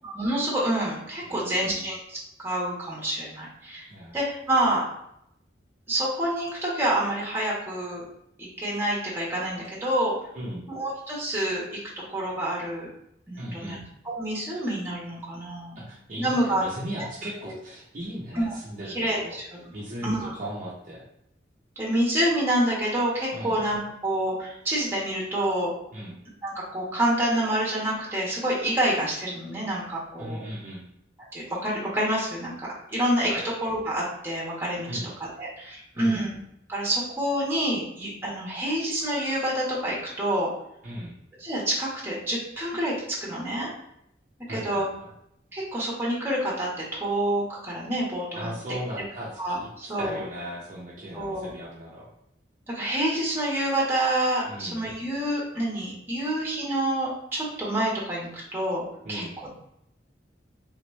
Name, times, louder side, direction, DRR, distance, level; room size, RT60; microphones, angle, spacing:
voice 1, 0.0-4.8 5.9-8.0 8.4-10.2 10.7-11.6 12.1-12.9 13.3-13.8 14.0-15.8 16.2-16.6 17.0-17.1 17.4-17.5 18.3-18.6 18.9-19.6 20.0-20.3 21.8-25.7 26.4-30.4 31.3-33.3 33.6-34.9 35.4-36.4 36.7-40.5 41.4-43.7 44.5-44.9 45.5-48.5 49.4-50.3 51.1-51.5 52.7-59.2, right 1 dB, 15° right, -5 dB, 1.2 m, -27 dB
voice 2, 1.2-1.9 3.9-4.2 10.3-10.7 13.4-13.8 15.8-19.4 19.7-21.0 23.3-23.6 25.9-26.2 30.2-30.8 33.2-33.4 34.9-35.1 36.0-36.3 40.8-41.1 44.5-45.1 48.3-52.1 54.5-54.9 59.0-59.4, equal, 45° right, -5 dB, 0.7 m, -37 dB
3.5 x 3.2 x 3.1 m, 0.77 s
head